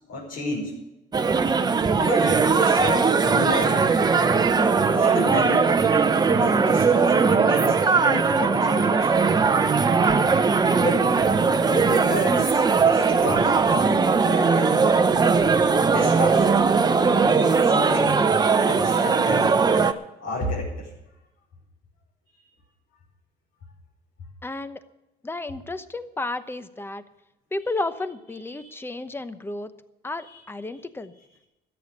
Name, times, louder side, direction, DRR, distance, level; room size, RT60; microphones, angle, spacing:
voice 1, 0.1-0.8 1.9-3.9 4.9-5.7 6.3-9.1 10.7-11.1 11.6-13.8 14.3-15.1 15.9-16.6 17.4-18.2 18.6-19.6 20.2-20.9 28.6-28.9, left 2 dB, 70° left, -6 dB, 5.4 m, -32 dB
sound 1, 1.1-19.9, right 5 dB, 25° right, 0.9 m, -19 dB
voice 2, 24.4-24.8 25.2-27.0 27.5-29.7 30.0-31.1, left 2 dB, 15° left, 12 dB, 0.9 m, -32 dB
13.5 x 9.1 x 8.1 m, 0.96 s
cardioid pair, 110°, 17 cm